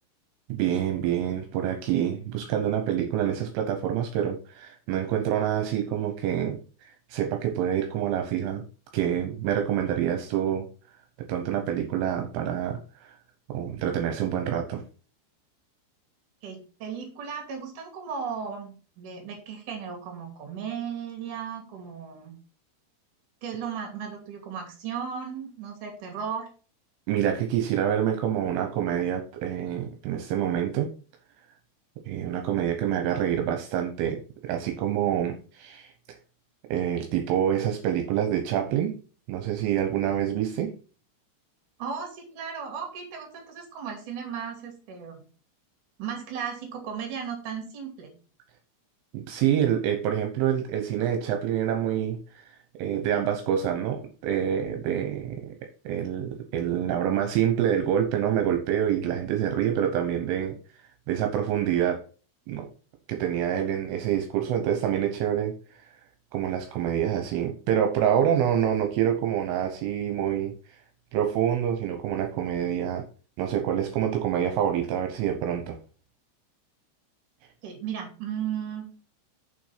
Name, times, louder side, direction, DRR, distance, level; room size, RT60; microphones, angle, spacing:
voice 1, 0.5-8.6 8.9-10.7 11.3-13.2 13.5-14.8 27.1-30.9 32.1-35.9 36.7-39.0 39.3-40.7 49.1-52.4 52.8-55.6 55.8-60.6 61.1-62.0 62.5-62.7 63.1-65.9 66.3-70.5 71.1-73.0 73.4-75.8, right 10 dB, 80° right, 4 dB, 3.4 m, -27 dB
voice 2, 16.4-22.4 23.4-26.5 41.8-45.2 46.0-48.1 77.6-78.9, right 7 dB, 45° right, 1 dB, 3.6 m, -35 dB
7.2 x 5.9 x 5.7 m, 0.37 s
omnidirectional pair, 5.8 m